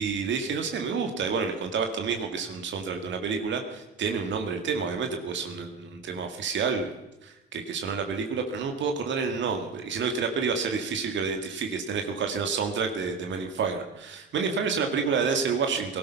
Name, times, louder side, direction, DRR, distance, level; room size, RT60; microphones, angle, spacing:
voice 1, 0.0-6.9 7.2-16.0, right 5 dB, 70° right, 5 dB, 2.0 m, -29 dB
19.0 x 13.0 x 5.8 m, 0.95 s
cardioid pair, 90°, 20 cm